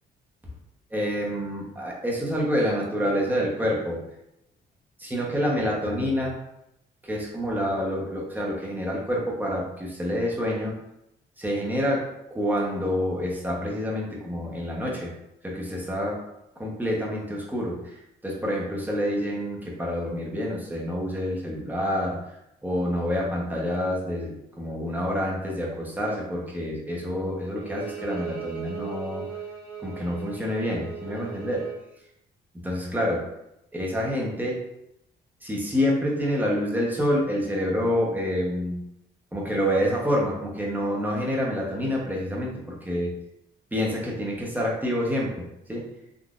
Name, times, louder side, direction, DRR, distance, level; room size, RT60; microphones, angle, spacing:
voice 1, 0.9-4.0 5.0-6.3 7.0-10.8 11.4-15.1 15.4-16.2 16.6-22.2 22.6-29.2 29.8-31.7 32.5-33.3 33.7-34.6 35.4-38.8 39.3-43.1 43.7-45.9, equal, 10° right, -3 dB, 0.9 m, -27 dB
Bowed string instrument, 27.6-31.8, right 7 dB, 75° right, 1.0 m, -38 dB
3.7 x 2.6 x 2.4 m, 0.84 s
cardioid pair, 90°, 20 cm